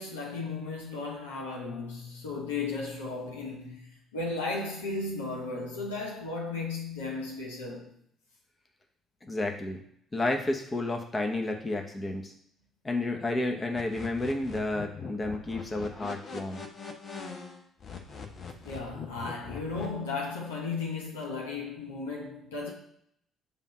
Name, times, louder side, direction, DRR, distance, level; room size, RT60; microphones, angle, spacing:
voice 1, 0.0-3.9 4.1-7.9 18.6-22.7, left 3 dB, 80° left, 1.2 m, -35 dB
voice 2, 9.2-9.8 10.1-12.3 12.8-16.6, left 2 dB, 25° left, 1.1 m, -31 dB
sound 1, 13.8-19.9, left 5 dB, 45° left, 1.0 m, -41 dB
7.2 x 2.7 x 5.6 m
figure-of-eight pair, 50°, 0 cm